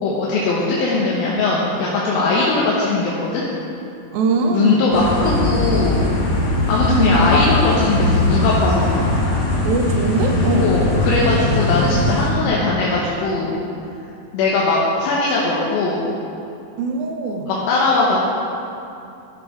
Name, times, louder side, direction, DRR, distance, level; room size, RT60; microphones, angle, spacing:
voice 1, 0.0-3.4 4.5-6.1 6.7-8.9 10.6-13.6 14.3-16.0 17.5-18.2, left 3 dB, 85° left, -5 dB, 2.9 m, -20 dB
voice 2, 4.1-4.9 6.9-7.3 9.6-10.7 16.8-17.5, right 3 dB, 90° right, 3 dB, 2.7 m, -21 dB
sound 1, 4.9-12.3, left 2 dB, 65° left, 3.5 m, -19 dB
14.0 x 6.6 x 4.9 m, 2.7 s
omnidirectional pair, 4.1 m